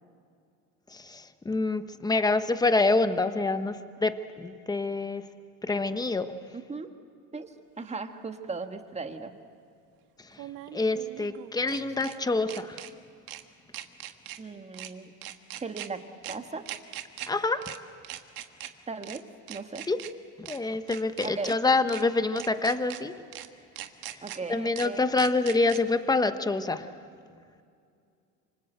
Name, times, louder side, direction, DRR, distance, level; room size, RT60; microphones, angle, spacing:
voice 1, 0.9-5.2 5.6-6.4 10.7-12.8 17.3-17.7 19.9-20.0 20.5-23.1 24.5-26.9, left 3 dB, 10° left, 10 dB, 1.1 m, -26 dB
voice 2, 6.5-6.9 7.3-9.3 14.4-15.1 15.6-16.0 16.3-16.6 18.9-19.2 19.5-19.8 21.2-21.5 24.2-25.1, right 4 dB, 15° right, 7 dB, 1.6 m, -37 dB
sound 1, 7.8-7.9 10.3-12.1 12.5-12.9 13.3-13.4 13.7-14.4 14.7-14.9 15.2-15.9 16.2-16.3 16.6-17.3 17.6-17.8 18.0-18.7 19.0-19.2 19.5-20.1 20.4-20.6 20.9-21.5 21.9-22.0 22.4-23.0 23.3-23.5 23.8-24.4 24.7-24.9 25.2-25.8, right 13 dB, 65° right, 1.5 m, -40 dB
26.5 x 24.5 x 8.0 m, 2.4 s
cardioid pair, 115°, 37 cm